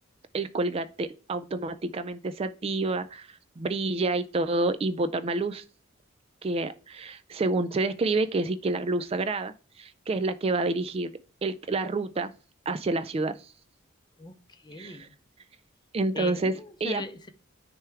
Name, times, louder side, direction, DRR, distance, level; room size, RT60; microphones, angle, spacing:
voice 1, 0.3-5.6 6.4-11.1 11.4-12.3 12.7-13.5 14.8-15.1 15.9-17.0, right 2 dB, 30° right, 12 dB, 0.3 m, -28 dB
voice 2, 14.2-15.1 16.1-17.3, left 3 dB, 20° left, 9 dB, 0.6 m, -40 dB
9.8 x 3.4 x 4.6 m, 0.38 s
head